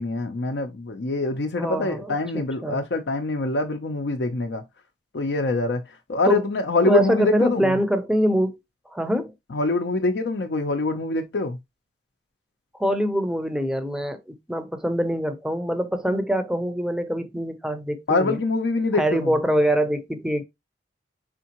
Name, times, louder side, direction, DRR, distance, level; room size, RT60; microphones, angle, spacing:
voice 1, 0.0-4.6 5.1-5.8 6.1-7.8 9.5-11.6 18.1-19.3, left 2 dB, 65° left, 0.5 m, -24 dB
voice 2, 1.5-2.8 6.2-6.5 6.8-8.6 8.9-9.3 12.8-18.4 18.9-20.4, equal, 5° right, 0.6 m, -24 dB
5.0 x 3.6 x 2.9 m
head